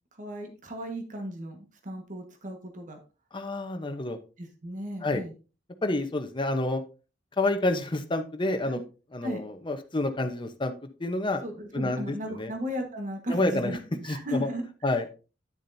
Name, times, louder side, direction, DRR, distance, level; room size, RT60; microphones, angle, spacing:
voice 1, 0.1-3.0 4.4-5.3 8.6-8.7 9.2-9.4 11.4-14.6, equal, 45° right, 4 dB, 1.4 m, -35 dB
voice 2, 3.3-4.2 5.0-5.2 5.8-6.8 7.4-8.8 9.1-10.7 11.0-11.4 11.7-12.5 13.3-13.7 14.1-14.5 14.8-15.0, left 2 dB, 30° left, 7 dB, 0.9 m, -28 dB
9.9 x 7.3 x 2.7 m, 0.33 s
head